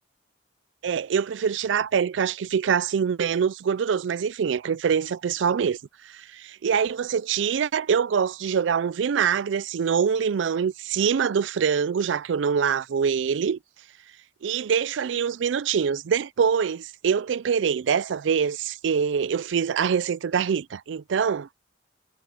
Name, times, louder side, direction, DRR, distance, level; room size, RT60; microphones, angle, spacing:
voice 1, 0.8-5.8 6.0-13.6 14.4-21.5, right 7 dB, 90° right, 0.4 m, -24 dB
head